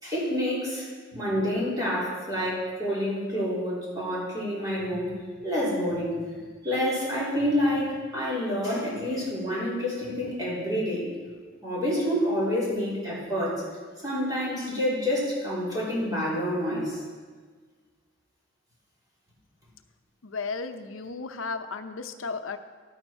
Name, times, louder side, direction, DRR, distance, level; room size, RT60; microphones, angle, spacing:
voice 1, 0.0-5.1 5.4-6.1 6.6-11.0 11.6-13.5 14.0-17.0, equal, 20° right, -7 dB, 3.4 m, -28 dB
voice 2, 20.2-22.6, left 4 dB, 85° left, 8 dB, 0.7 m, -34 dB
12.0 x 9.0 x 4.4 m, 1.5 s
head